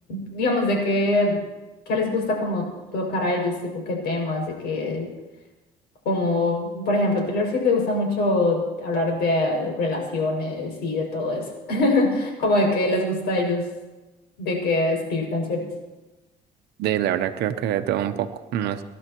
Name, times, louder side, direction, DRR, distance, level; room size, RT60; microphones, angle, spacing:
voice 1, 0.1-1.4 1.9-2.6 2.9-5.1 6.0-13.6 14.4-15.7, left 2 dB, 75° left, 0 dB, 6.3 m, -23 dB
voice 2, 16.8-18.8, right 11 dB, 80° right, 9 dB, 0.9 m, -25 dB
27.0 x 12.0 x 3.0 m, 1.1 s
cardioid pair, 110°, 17 cm